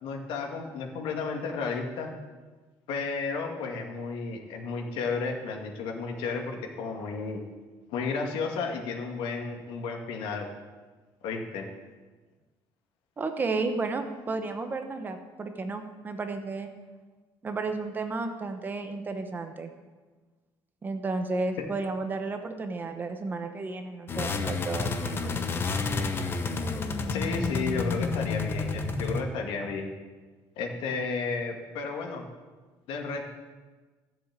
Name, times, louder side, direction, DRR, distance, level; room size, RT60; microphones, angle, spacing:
voice 1, 0.0-2.1 2.9-7.4 7.9-10.5 11.2-11.7 27.1-29.9 30.6-32.3 32.9-33.3, left 4 dB, 80° left, 3 dB, 2.3 m, -33 dB
voice 2, 13.2-16.7 17.4-19.7 20.8-25.4, right 3 dB, 20° right, 7 dB, 1.0 m, -33 dB
sound 1, 24.1-29.2, left 4 dB, 25° left, 0.9 m, -30 dB
14.0 x 7.4 x 8.8 m, 1.4 s
cardioid pair, 170°, 9 cm